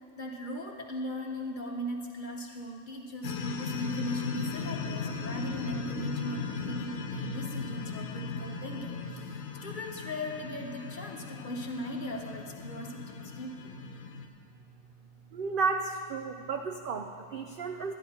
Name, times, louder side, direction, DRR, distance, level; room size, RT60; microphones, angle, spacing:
voice 1, 0.2-13.7, equal, 40° left, 1 dB, 0.9 m, -38 dB
sound 1, 3.2-14.3, left 4 dB, 70° left, 1.1 m, -37 dB
voice 2, 15.3-17.9, right 4 dB, 70° right, 5 dB, 0.5 m, -32 dB
12.0 x 10.5 x 4.3 m, 2.3 s
omnidirectional pair, 1.5 m